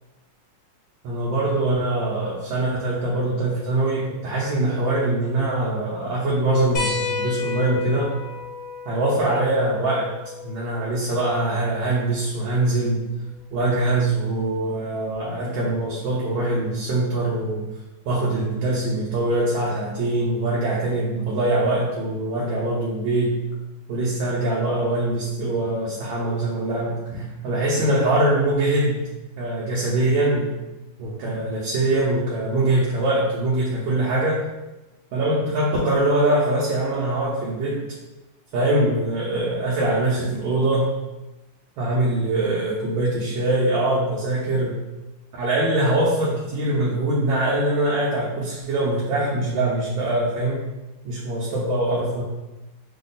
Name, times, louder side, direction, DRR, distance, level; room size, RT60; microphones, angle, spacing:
voice 1, 1.0-8.1 8.9-10.1 10.4-13.0 13.5-17.6 18.0-23.3 23.9-29.0 29.4-30.5 31.0-34.4 35.1-37.9 38.5-40.9 41.8-44.7 45.4-50.6 51.0-52.2, right 2 dB, 75° right, -5 dB, 1.4 m, -23 dB
sound 1, 6.7-11.8 13.4-13.5 15.1-15.2, left 5 dB, 55° left, 0.6 m, -32 dB
3.4 x 2.2 x 4.0 m, 1.0 s
omnidirectional pair, 2.2 m